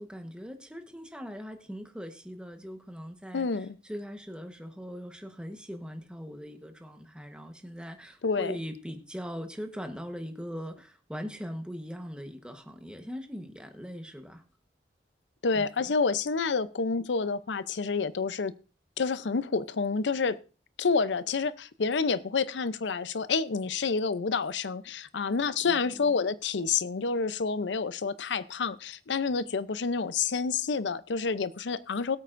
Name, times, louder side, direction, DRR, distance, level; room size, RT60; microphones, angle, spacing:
voice 1, 0.0-14.4 15.5-15.9 25.6-26.2, equal, 5° right, 1.1 m, -41 dB
voice 2, 3.3-3.8 8.2-8.6 15.4-18.5 19.0-20.4 20.8-32.2, left 5 dB, 90° left, 0.6 m, -28 dB
21.5 x 8.3 x 2.6 m
head